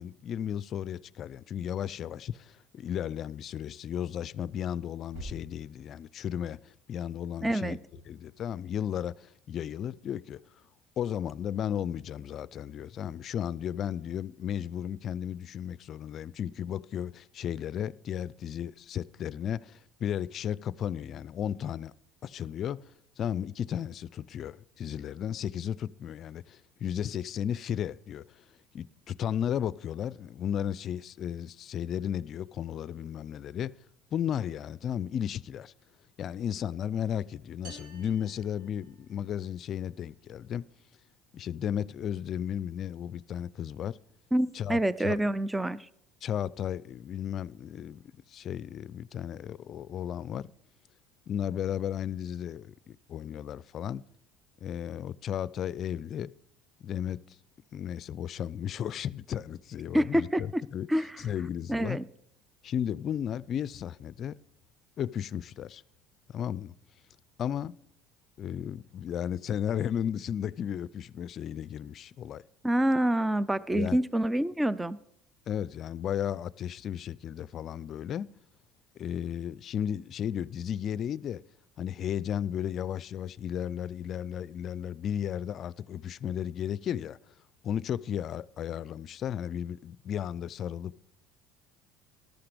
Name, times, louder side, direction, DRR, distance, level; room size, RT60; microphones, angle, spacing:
voice 1, 0.0-7.8 8.1-10.4 11.0-21.9 22.2-22.9 23.2-28.2 28.7-33.8 34.1-35.7 36.2-40.7 41.3-44.0 44.5-45.2 46.2-50.5 51.3-54.0 54.6-56.3 56.8-57.2 57.7-60.9 61.2-62.0 62.6-64.4 65.0-65.8 66.3-66.7 67.4-67.7 68.4-72.4 73.7-74.0 75.5-78.3 79.0-81.4 81.8-87.2 87.6-91.0, left 9 dB, 50° left, 0.4 m, -34 dB
sound 1, 5.1-6.5 7.5-8.7, right 1 dB, 90° right, 5.2 m, -49 dB
voice 2, 7.4-7.8 44.3-45.9 59.9-60.6 60.9-61.2 61.7-62.1 72.6-75.0, right 1 dB, 10° right, 0.5 m, -27 dB
sound 2, 37.6-39.4, right 2 dB, 70° right, 4.6 m, -52 dB
14.0 x 12.0 x 5.1 m
supercardioid pair, 85°, 0 cm